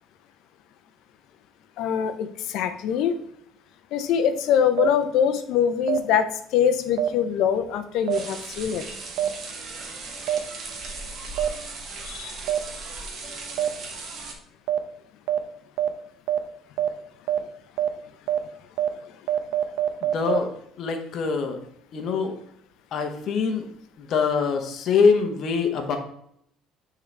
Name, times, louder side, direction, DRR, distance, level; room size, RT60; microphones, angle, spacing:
voice 1, 1.8-3.2 3.9-8.8 12.0-12.4, left 8 dB, 60° left, 9 dB, 0.6 m, -23 dB
sound 1, 4.8-4.9 5.9-6.0 7.0-7.1 8.1-8.2 9.2-9.3 10.3-10.4 11.4-11.5 12.5-12.6 13.6-13.7 14.7-14.8 15.3-15.4 15.8-15.9 16.3-16.4 16.8-16.9 17.3-17.4 17.8-17.9 18.3-18.4 18.8-18.9 19.3-20.4, right 11 dB, 65° right, 0.7 m, -23 dB
sound 2, 8.1-14.3, right 3 dB, 35° right, 1.0 m, -37 dB
voice 2, 20.0-20.5 20.8-21.6 21.9-22.4 22.9-23.7 24.0-26.0, left 5 dB, 40° left, 4 dB, 1.0 m, -23 dB
9.0 x 3.9 x 3.3 m, 0.70 s
cardioid pair, 175°, 0 cm